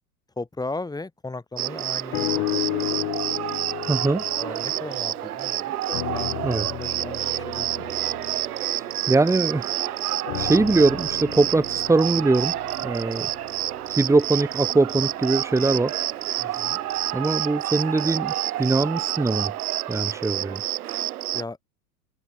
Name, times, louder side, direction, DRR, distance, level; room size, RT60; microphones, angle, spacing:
voice 1, 0.4-3.1 4.3-5.7 6.1-7.9 16.4-16.8 21.3-21.6, left 3 dB, 10° left, 3.0 m, -37 dB
Cricket, 1.6-21.4, right 13 dB, 85° right, 1.7 m, -29 dB
sound 1, 2.1-5.5 5.9-9.6 10.2-14.5 15.1-15.2, left 27 dB, 60° left, 2.9 m, -33 dB
voice 2, 3.9-4.2 6.4-6.7 8.5-12.6 12.8-16.8 17.1-19.5 19.9-20.6, right 3 dB, 5° right, 1.1 m, -23 dB
hypercardioid pair, 105°, 43 cm